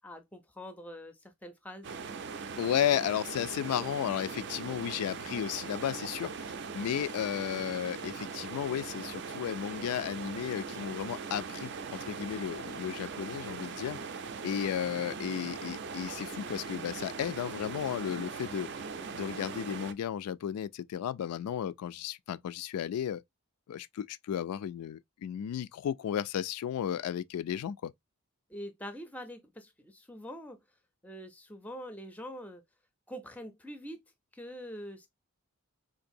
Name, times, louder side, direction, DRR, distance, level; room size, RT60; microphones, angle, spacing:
voice 1, 0.0-1.9 19.0-19.3 28.5-30.6 31.0-32.6 33.1-34.0 34.3-35.1, equal, 5° left, 0.4 m, -44 dB
sound 1, 1.8-19.9, right 5 dB, 50° right, 0.4 m, -40 dB
voice 2, 2.6-6.3 6.7-14.0 14.4-18.7 19.1-23.2 23.7-27.9, left 9 dB, 85° left, 0.3 m, -34 dB
3.8 x 2.6 x 2.6 m
head